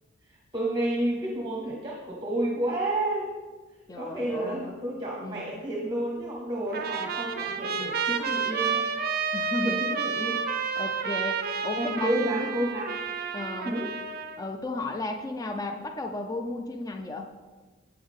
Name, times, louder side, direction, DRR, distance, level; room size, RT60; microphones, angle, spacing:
voice 1, 0.3-3.3 3.9-8.9 9.3-10.4 11.7-12.9 13.6-13.9, right 1 dB, 25° right, -3 dB, 1.0 m, -30 dB
voice 2, 3.9-4.7 5.2-5.5 9.3-9.8 10.8-12.3 13.3-13.8 14.4-17.3, left 2 dB, 15° left, 5 dB, 0.4 m, -34 dB
Trumpet, 6.7-14.4, right 6 dB, 45° right, 0.5 m, -30 dB
7.8 x 7.1 x 3.6 m, 1.3 s
head